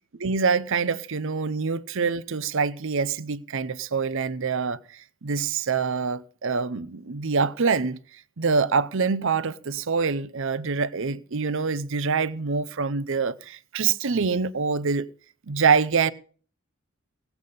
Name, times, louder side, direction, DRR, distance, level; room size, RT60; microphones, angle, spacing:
voice 1, 0.2-8.0 8.4-15.1 15.5-16.1, right 5 dB, 65° right, 0.7 m, -25 dB
18.0 x 8.2 x 5.3 m
head